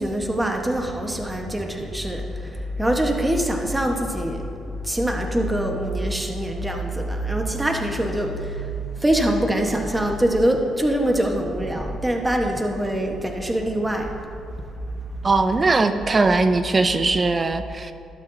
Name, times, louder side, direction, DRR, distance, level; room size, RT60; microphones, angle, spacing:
voice 1, 0.0-14.2 14.9-15.0 16.2-16.3, right 1 dB, 10° right, 2 dB, 1.2 m, -24 dB
voice 2, 15.2-17.9, right 3 dB, 30° right, 9 dB, 0.5 m, -20 dB
12.5 x 12.0 x 2.7 m, 2.4 s
cardioid pair, 90°, 0 cm